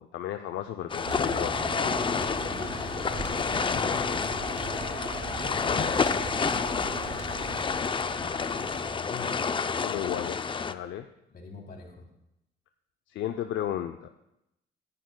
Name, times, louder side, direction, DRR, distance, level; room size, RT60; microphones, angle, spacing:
voice 1, 0.0-1.6 9.8-11.1 13.1-14.1, left 11 dB, 75° left, 7 dB, 0.6 m, -34 dB
sound 1, 0.9-10.7, left 5 dB, 25° left, 0.4 m, -29 dB
sound 2, 1.0-7.6, right 3 dB, 65° right, 2.3 m, -39 dB
sound 3, 2.2-9.0, right 3 dB, 30° right, 1.8 m, -45 dB
voice 2, 2.7-4.7 5.6-6.7 7.1-8.8 9.1-9.5 11.3-12.1, left 3 dB, 50° left, 0 dB, 3.1 m, -46 dB
18.5 x 11.0 x 2.3 m, 0.86 s
cardioid pair, 90°, 20 cm